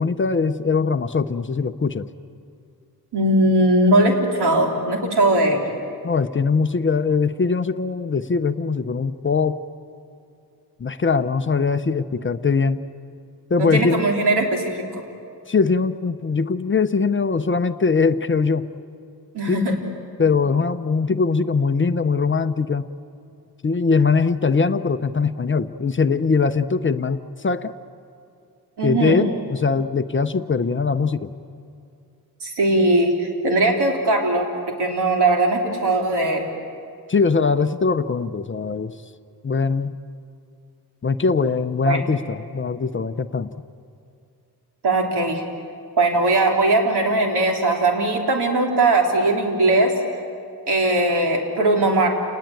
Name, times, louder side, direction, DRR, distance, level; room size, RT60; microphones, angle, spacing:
voice 1, 0.0-2.1 6.0-9.6 10.8-12.8 13.5-14.1 15.5-18.7 19.5-19.6 20.2-22.9 23.6-27.7 28.8-31.3 37.1-38.9 39.4-39.9 41.0-43.5, left 4 dB, 30° left, 10 dB, 0.6 m, -21 dB
voice 2, 3.1-5.6 13.6-15.0 19.3-19.7 28.8-29.3 32.4-34.5 34.8-36.5 41.9-42.0 44.8-45.4 46.0-49.9 50.7-52.1, right 2 dB, 85° right, 1 dB, 3.8 m, -19 dB
29.0 x 20.0 x 9.1 m, 2.5 s
wide cardioid pair, 165°, 39 cm